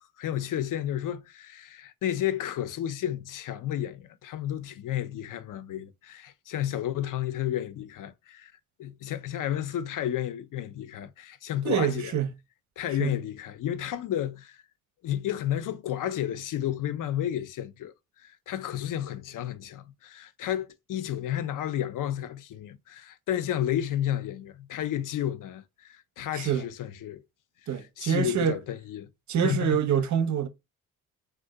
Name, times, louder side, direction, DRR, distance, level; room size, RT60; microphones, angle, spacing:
voice 1, 0.2-8.5 8.8-12.1 12.8-14.6 15.0-17.9 18.2-27.2 28.0-29.1 29.4-29.8, left 11 dB, 50° left, 0.5 m, -32 dB
voice 2, 11.6-12.3 13.0-13.2 26.3-26.6 27.7-28.6 29.3-30.5, right 8 dB, 45° right, 0.6 m, -26 dB
2.6 x 2.3 x 3.5 m
hypercardioid pair, 50°, 41 cm